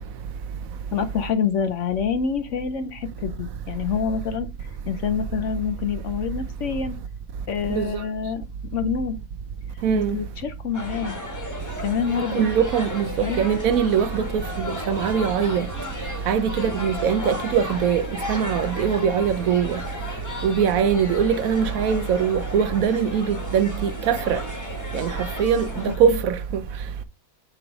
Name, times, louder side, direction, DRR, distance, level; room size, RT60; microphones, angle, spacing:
voice 1, 0.9-6.9 7.5-8.5 8.7-9.2 9.7-11.2 11.8-12.5 13.2-13.4 25.9-26.2, left 6 dB, 65° left, 0.8 m, -27 dB
voice 2, 9.8-10.2 12.3-15.7 16.3-19.8 20.4-24.4 24.9-25.1 25.4-26.6, right 7 dB, 70° right, 1.0 m, -22 dB
sound 1, 10.7-25.9, left 2 dB, 15° left, 1.3 m, -34 dB
7.7 x 3.1 x 5.0 m
omnidirectional pair, 1.6 m